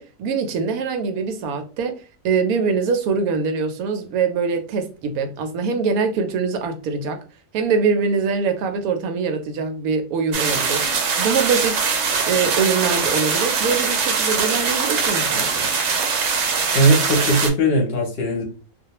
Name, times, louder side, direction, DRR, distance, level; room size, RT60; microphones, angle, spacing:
voice 1, 0.0-7.2 7.5-10.8 11.2-11.9 12.3-15.7, right 5 dB, 90° right, 6 dB, 1.1 m, -23 dB
sound 1, 10.3-17.5, right 5 dB, 65° right, 0.8 m, -22 dB
voice 2, 16.7-18.4, right 1 dB, 55° left, 1 dB, 0.7 m, -18 dB
2.4 x 2.2 x 2.8 m, 0.34 s
omnidirectional pair, 1.5 m